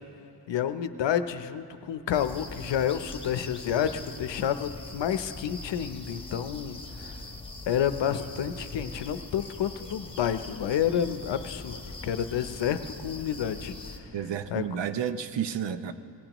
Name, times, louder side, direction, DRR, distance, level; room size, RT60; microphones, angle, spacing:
voice 1, 0.5-7.1 7.7-13.8 14.5-14.6, left 9 dB, 75° left, 11 dB, 0.7 m, -29 dB
sound 1, 2.1-14.0, left 2 dB, 10° left, 1.1 m, -42 dB
voice 2, 14.1-15.9, right 8 dB, 75° right, 11 dB, 0.7 m, -31 dB
26.5 x 18.0 x 3.0 m, 2.7 s
wide cardioid pair, 140°, 43 cm